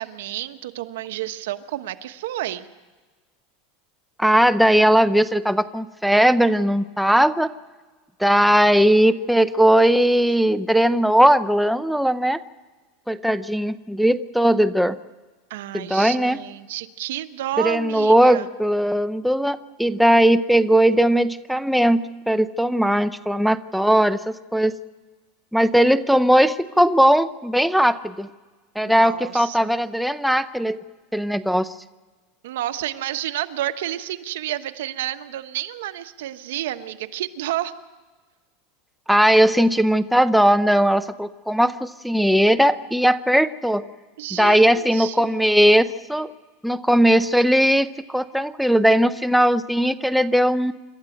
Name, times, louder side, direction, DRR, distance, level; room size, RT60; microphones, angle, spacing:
voice 1, 0.0-2.7 15.5-18.5 28.8-29.7 32.4-37.7 44.2-45.5, right 13 dB, 85° right, 9 dB, 1.1 m, -30 dB
voice 2, 4.2-7.5 8.2-12.4 13.1-15.0 15.7-16.4 17.6-24.7 25.5-28.3 28.8-30.8 31.1-31.7 39.1-43.8 44.3-46.3 46.6-50.7, equal, ahead, 10 dB, 0.6 m, -18 dB
27.0 x 13.0 x 7.9 m, 1.3 s
supercardioid pair, 150°, 0 cm